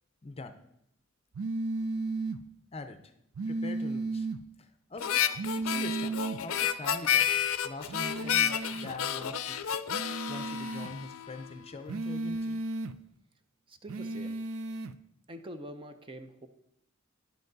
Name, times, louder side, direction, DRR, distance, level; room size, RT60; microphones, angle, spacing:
voice 1, 0.2-0.6 2.7-3.1 3.5-4.3 4.6-5.2 5.6-9.6 9.9-12.6, left 2 dB, 30° left, 9 dB, 0.6 m, -44 dB
sound 1, 1.3-2.4 3.3-4.4 5.4-6.4 7.9-8.9 9.9-10.9 11.9-12.9 13.9-14.9, right 3 dB, 75° right, 0.4 m, -34 dB
Harmonica, 5.0-11.5, left 9 dB, 75° left, 0.5 m, -30 dB
voice 2, 13.7-14.4 15.3-16.5, right 1 dB, 25° right, 8 dB, 0.6 m, -45 dB
10.5 x 7.8 x 3.9 m, 0.80 s
head